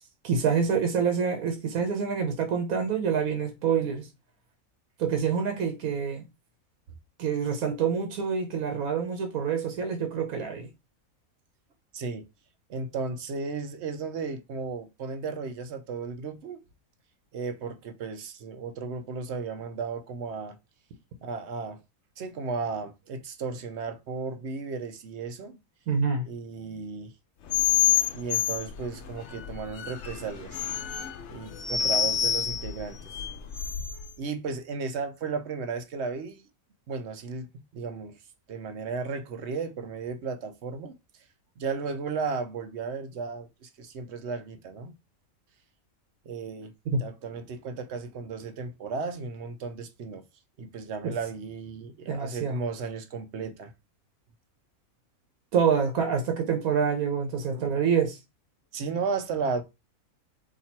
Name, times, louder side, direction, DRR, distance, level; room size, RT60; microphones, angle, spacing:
voice 1, 0.2-4.1 5.0-6.2 7.2-10.7 25.9-26.2 46.9-47.0 51.0-51.1 52.1-52.6 55.5-58.2, right 6 dB, 85° right, 1.3 m, -26 dB
voice 2, 11.9-12.2 12.7-16.6 17.3-20.6 21.2-21.8 22.2-25.6 26.2-27.1 28.1-30.6 31.3-33.1 34.2-36.4 36.9-37.5 37.7-38.2 38.5-40.9 41.6-45.0 46.2-46.7 47.0-50.2 50.6-53.7 57.5-57.9 58.7-59.6, right 5 dB, 60° right, 0.9 m, -34 dB
sound 1, 27.5-34.1, left 10 dB, 65° left, 0.8 m, -28 dB
4.2 x 2.9 x 4.3 m
omnidirectional pair, 1.5 m